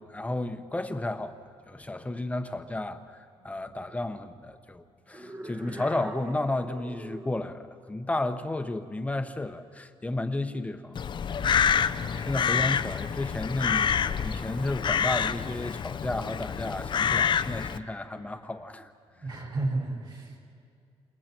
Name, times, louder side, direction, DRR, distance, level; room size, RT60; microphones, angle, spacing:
voice 1, 0.0-11.0 11.3-11.5 11.8-18.9, left 2 dB, 10° left, 8 dB, 1.0 m, -33 dB
voice 2, 3.3-3.6 5.1-5.3 5.5-5.7 11.4-12.4 19.1-20.4, right 2 dB, 45° right, -1 dB, 5.4 m, -35 dB
sound 1, 5.1-7.4, right 1 dB, 25° right, 1.3 m, -42 dB
Crow, 11.0-17.8, left 7 dB, 45° left, 0.6 m, -27 dB
29.0 x 27.5 x 4.5 m, 2.4 s
cardioid pair, 125°, 11 cm